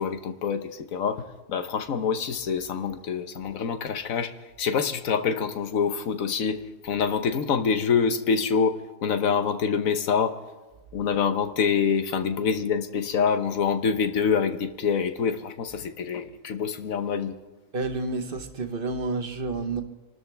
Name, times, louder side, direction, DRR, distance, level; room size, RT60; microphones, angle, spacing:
voice 1, 0.0-4.3 4.6-10.3 10.9-17.4, left 6 dB, 80° left, 1.3 m, -26 dB
voice 2, 17.7-19.8, right 3 dB, 45° right, 1.2 m, -29 dB
26.5 x 13.0 x 3.4 m
omnidirectional pair, 1.4 m